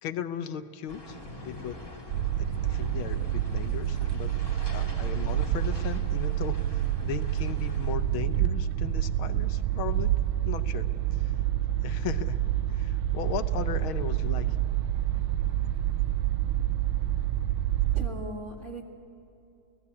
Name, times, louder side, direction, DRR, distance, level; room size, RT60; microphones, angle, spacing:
voice 1, 0.0-1.8 2.6-4.3 4.7-10.1 10.4-11.3 11.8-12.4 12.7-14.6, left 9 dB, 80° left, 11 dB, 1.7 m, -37 dB
sound 1, 0.9-8.0, left 1 dB, 10° left, 3.2 m, -44 dB
sound 2, 2.1-18.1, right 12 dB, 85° right, 1.6 m, -28 dB
voice 2, 17.9-18.8, right 1 dB, 35° right, 2 dB, 2.3 m, -38 dB
29.5 x 17.5 x 8.6 m, 2.7 s
omnidirectional pair, 2.2 m